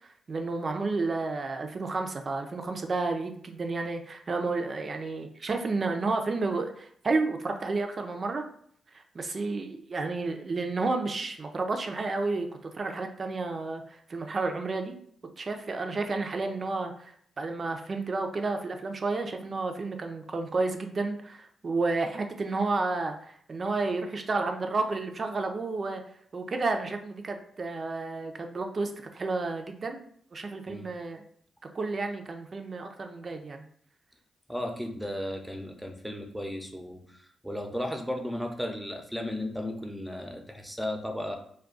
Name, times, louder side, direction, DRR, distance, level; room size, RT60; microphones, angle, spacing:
voice 1, 0.0-8.5 8.9-14.9 15.4-26.0 26.3-30.0 30.3-31.2 31.7-33.6, right 3 dB, 50° right, 5 dB, 0.5 m, -31 dB
voice 2, 34.5-41.4, left 1 dB, 5° right, 3 dB, 0.7 m, -35 dB
2.3 x 2.2 x 3.8 m, 0.63 s
supercardioid pair, 45°, 0 cm